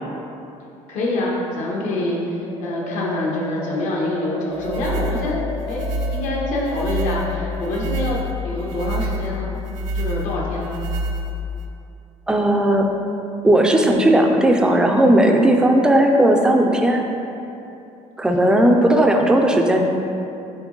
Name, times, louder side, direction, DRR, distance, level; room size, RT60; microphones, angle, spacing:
voice 1, 0.9-9.5 9.9-10.8, left 1 dB, 65° left, -3 dB, 1.2 m, -26 dB
sound 1, 2.5-7.5, left 1 dB, 45° left, 1.1 m, -33 dB
sound 2, 4.5-11.7, equal, 85° right, 0.5 m, -27 dB
voice 2, 12.3-12.9 13.4-17.1 18.2-19.8, right 1 dB, 5° right, 2 dB, 0.4 m, -16 dB
7.1 x 3.8 x 3.8 m, 2.8 s
cardioid pair, 170°, 13 cm